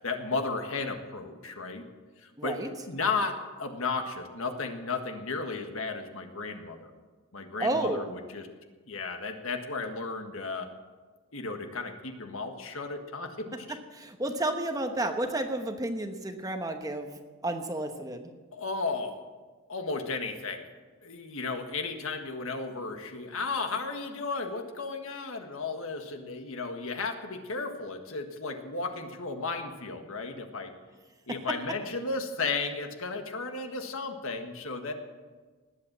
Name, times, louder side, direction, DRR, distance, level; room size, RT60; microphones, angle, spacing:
voice 1, 0.0-1.8 2.2-2.6 2.9-6.9 7.3-8.5 8.9-10.7 11.3-13.8 18.5-19.2 19.7-20.7 21.0-30.7 31.3-34.9, left 4 dB, 70° left, 5 dB, 1.6 m, -34 dB
voice 2, 2.4-2.7 7.6-8.1 13.7-17.1 17.4-18.3, right 1 dB, 15° right, 5 dB, 1.0 m, -31 dB
19.5 x 8.4 x 7.5 m, 1.4 s
head